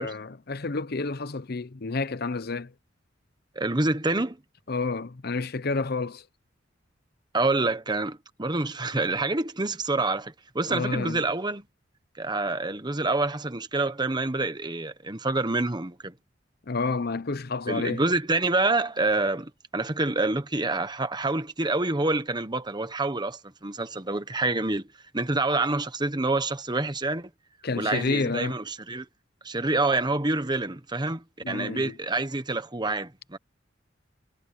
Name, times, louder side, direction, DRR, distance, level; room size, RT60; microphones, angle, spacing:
voice 1, 0.0-2.7 4.7-6.2 10.7-11.2 16.7-18.0 27.6-28.6 31.4-32.0, left 3 dB, 55° left, 0.8 m, -30 dB
voice 2, 3.5-4.4 7.3-11.6 12.2-16.1 17.7-24.9 25.1-27.3 27.8-29.1 29.4-33.4, right 2 dB, 25° right, 1.2 m, -27 dB
head